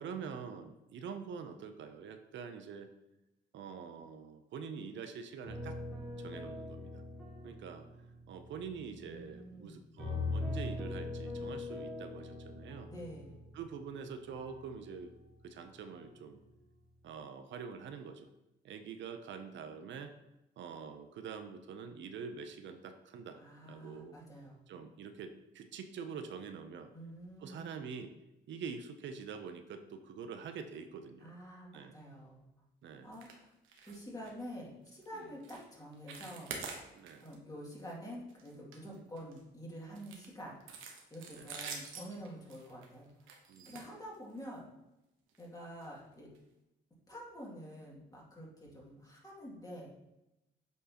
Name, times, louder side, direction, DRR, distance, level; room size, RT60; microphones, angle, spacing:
voice 1, 0.0-2.9 3.5-5.8 6.2-7.0 7.4-7.9 8.3-12.9 13.5-15.1 15.4-16.4 17.0-18.3 18.6-20.1 20.6-23.4 23.7-24.1 24.7-26.9 27.4-28.1 28.5-31.3 31.7-32.0 32.8-33.1 35.1-35.3 36.9-37.3 41.3-41.5 43.5-43.8, right 6 dB, 70° right, 8 dB, 0.6 m, -45 dB
sound 1, 5.4-9.5 10.0-15.5 15.9-16.4, left 2 dB, ahead, 1.7 m, -42 dB
voice 2, 9.0-9.9 12.9-13.4 23.4-24.6 26.9-27.9 31.2-32.5 33.0-33.5 33.9-36.6 37.2-40.6 41.1-43.1 43.7-44.7 45.4-46.3 47.1-49.9, equal, 20° left, -4 dB, 2.3 m, -48 dB
sound 2, 33.1-33.4 33.6-34.0 34.2-34.4 34.9-35.1 35.4-35.6 35.9-37.3 37.7-37.9 38.3-39.4 39.9-44.5 45.3-45.4 45.8-45.9 46.3-46.4, right 5 dB, 90° right, 1.1 m, -47 dB
8.2 x 4.5 x 2.9 m, 0.92 s
cardioid pair, 90°, 20 cm